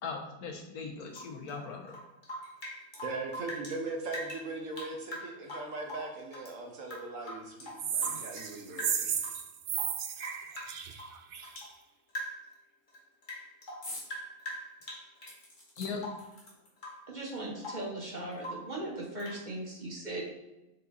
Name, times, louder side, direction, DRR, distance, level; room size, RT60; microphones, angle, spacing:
voice 1, 0.0-2.0 15.8-16.0, left 5 dB, 70° left, 2 dB, 1.5 m, -39 dB
Rain / Drip, 1.1-3.8 4.1-6.5 6.8-8.5 8.8-9.4 9.7-11.7 12.1-12.5 12.9-15.4 16.0-16.3 16.8-17.1 17.4-17.9 18.4-18.7 19.2-19.4, equal, 30° left, 1.6 m, -43 dB
voice 2, 3.0-9.1, right 3 dB, 60° right, 2 dB, 1.3 m, -39 dB
sound 1, 7.8-11.6, right 7 dB, 85° right, 0.4 m, -34 dB
sound 2, 13.8-14.1 14.5-14.6 15.2-16.9 17.8-17.9 18.2-18.3, left 1 dB, 55° left, 2.2 m, -46 dB
voice 3, 17.1-20.3, right 1 dB, 30° right, -2 dB, 1.3 m, -38 dB
5.4 x 5.2 x 4.0 m, 0.98 s
omnidirectional pair, 1.6 m